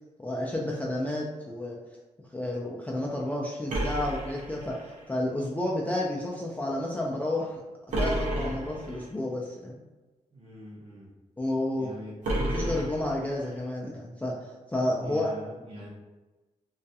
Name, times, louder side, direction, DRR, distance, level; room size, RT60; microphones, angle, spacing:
voice 1, 0.2-1.8 2.3-7.6 8.0-9.8 11.4-12.0 12.4-15.3, left 1 dB, 10° left, -4 dB, 0.3 m, -31 dB
sound 1, 3.7-5.1 7.9-9.1 12.2-13.6, right 1 dB, 85° right, 0.7 m, -31 dB
voice 2, 10.3-11.1 11.8-12.1 15.0-15.9, left 1 dB, 45° right, -7 dB, 0.7 m, -44 dB
2.3 x 2.1 x 2.7 m, 1.2 s
cardioid pair, 100°, 13 cm